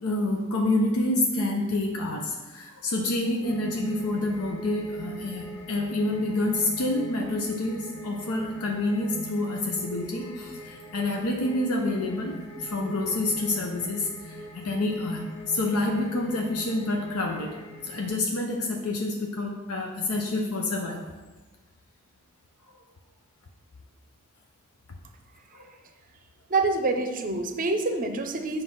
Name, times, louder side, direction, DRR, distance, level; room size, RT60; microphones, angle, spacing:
voice 1, 0.0-12.3 12.6-17.5 17.8-21.0 25.5-25.7, left 2 dB, 80° left, 1 dB, 0.7 m, -28 dB
sound 1, 3.4-18.1, equal, 25° left, 1.1 m, -42 dB
voice 2, 26.5-28.6, right 3 dB, 40° right, 6 dB, 0.6 m, -26 dB
7.3 x 3.3 x 5.8 m, 1.2 s
head